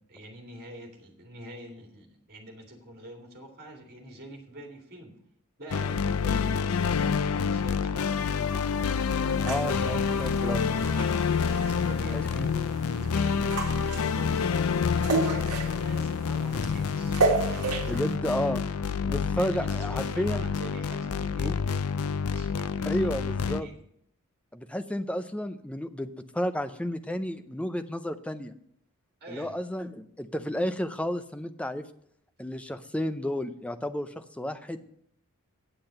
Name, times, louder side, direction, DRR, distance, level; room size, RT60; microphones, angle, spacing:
voice 1, 0.0-5.1 5.6-8.5 11.5-18.0 19.3-21.8 22.3-23.7 29.2-29.5, right 1 dB, 45° right, 1 dB, 2.6 m, -46 dB
sound 1, 5.7-23.6, left 6 dB, 70° left, 0.5 m, -28 dB
voice 2, 9.4-10.6 12.1-12.5 17.9-18.6 19.0-20.5 21.4-21.6 22.8-23.7 24.5-28.5 29.3-31.9 32.4-34.8, equal, 5° left, 9 dB, 0.5 m, -32 dB
sound 2, 9.4-18.1, right 3 dB, 90° right, 1.4 m, -33 dB
8.9 x 7.7 x 6.5 m, 0.70 s
head